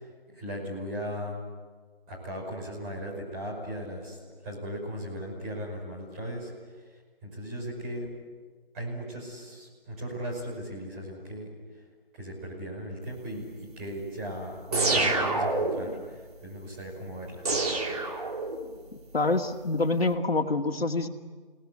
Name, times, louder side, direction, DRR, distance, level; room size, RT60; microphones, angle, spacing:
voice 1, 0.3-1.4 2.1-6.5 7.2-8.1 8.7-11.5 12.1-13.5 13.8-17.7, equal, 15° right, -4 dB, 5.7 m, -37 dB
sound 1, 14.7-16.0 17.5-18.8, right 3 dB, 40° right, 3.4 m, -27 dB
voice 2, 18.9-21.1, left 3 dB, 80° left, 4 dB, 2.3 m, -26 dB
29.0 x 19.0 x 9.9 m, 1.5 s
figure-of-eight pair, 165°, 30 cm